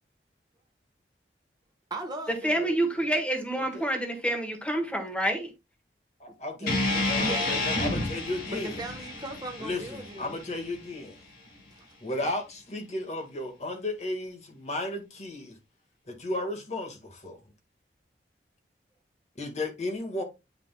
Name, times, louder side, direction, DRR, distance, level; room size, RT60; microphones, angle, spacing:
voice 1, 1.9-2.8 6.3-6.7 7.2-7.7 8.5-10.4 11.7-11.8, right 2 dB, 25° right, 1.1 m, -38 dB
voice 2, 2.4-5.5, right 1 dB, 5° left, 1.4 m, -28 dB
voice 3, 6.2-8.7 9.6-11.2 12.0-15.5 16.1-17.4 19.4-20.2, left 2 dB, 40° left, 1.7 m, -34 dB
sound 1, 6.7-10.8, left 2 dB, 55° left, 2.2 m, -30 dB
9.5 x 4.9 x 2.2 m
head